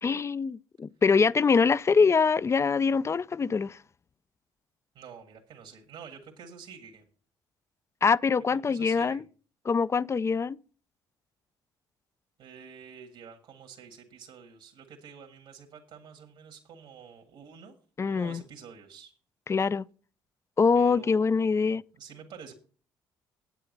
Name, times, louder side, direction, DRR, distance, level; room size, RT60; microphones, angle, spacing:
voice 1, 0.0-3.8 8.0-9.2 9.6-10.6 18.0-18.4 19.5-19.8 20.6-21.8, left 5 dB, 30° left, 0.4 m, -24 dB
voice 2, 4.9-7.1 8.7-9.2 12.4-17.8 18.0-19.1 20.7-22.5, right 6 dB, 70° right, 1.8 m, -48 dB
9.1 x 8.6 x 5.3 m
supercardioid pair, 65°, 10 cm